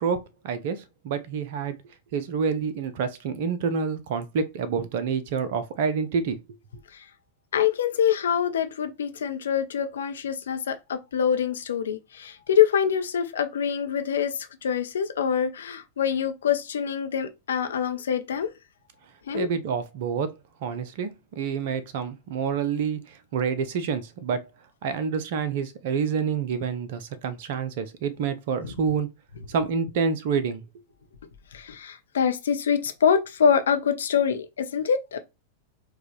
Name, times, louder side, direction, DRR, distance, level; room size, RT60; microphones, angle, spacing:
voice 1, 0.0-1.8 2.1-6.4 19.3-20.3 20.6-24.4 24.8-29.1 29.5-30.6, right 6 dB, 50° right, 0.7 m, -28 dB
voice 2, 7.5-18.5 19.3-19.5 28.6-28.7 31.5-35.2, left 8 dB, 65° left, 0.6 m, -25 dB
4.7 x 2.4 x 3.2 m
figure-of-eight pair, 90°, 0 cm